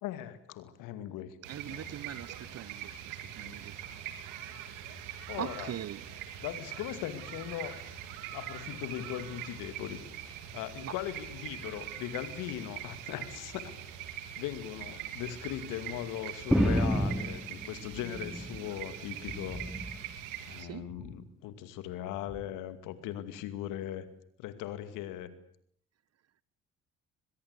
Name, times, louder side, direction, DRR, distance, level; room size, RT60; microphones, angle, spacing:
voice 1, 0.0-1.4 1.7-2.0 3.4-3.6 5.3-5.7 6.4-7.8 8.3-13.7 14.4-19.6 20.5-24.1 24.4-25.3, left 12 dB, 75° left, 2.4 m, -39 dB
sound 1, 1.4-20.6, right 10 dB, 80° right, 3.0 m, -43 dB
voice 2, 1.5-3.7 5.4-6.0 10.8-10.9 20.6-20.9, right 11 dB, 50° right, 1.0 m, -41 dB
sound 2, 16.5-18.7 19.1-20.0 20.9-21.3 22.3-22.4, equal, ahead, 3.0 m, -31 dB
23.5 x 21.5 x 8.3 m
hypercardioid pair, 60°, 32 cm